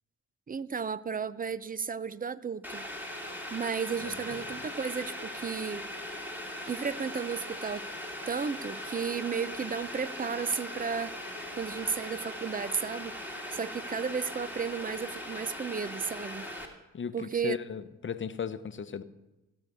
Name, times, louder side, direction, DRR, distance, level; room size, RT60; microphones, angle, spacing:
voice 1, 0.5-2.9 3.5-5.9 6.7-7.9 8.3-16.5 17.1-17.6, right 6 dB, 25° right, 18 dB, 0.5 m, -34 dB
Boiling, 2.6-16.7, left 1 dB, 5° right, 2.3 m, -40 dB
voice 2, 4.0-4.6 16.9-19.0, left 7 dB, 35° left, 11 dB, 0.9 m, -37 dB
16.0 x 6.7 x 5.5 m, 1.0 s
supercardioid pair, 60°, 35 cm